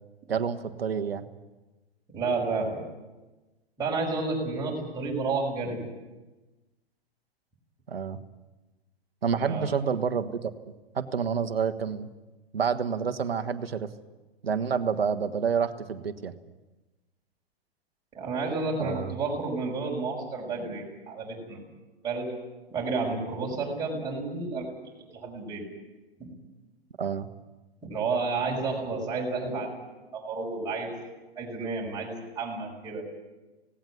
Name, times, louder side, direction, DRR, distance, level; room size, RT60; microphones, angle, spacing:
voice 1, 0.3-1.2 7.9-8.2 9.2-10.5 10.9-12.1 12.5-13.9 14.4-16.3 18.8-19.1 27.0-27.3, right 6 dB, 70° right, 8 dB, 1.5 m, -28 dB
voice 2, 2.1-2.8 3.8-5.8 9.3-9.7 18.1-21.6 22.0-22.3 22.7-24.7 25.1-25.7 26.2-26.3 27.8-29.7 30.1-30.9 31.4-33.1, right 3 dB, 10° right, -3 dB, 5.7 m, -31 dB
18.0 x 17.5 x 9.7 m, 1.1 s
figure-of-eight pair, 105°, 31 cm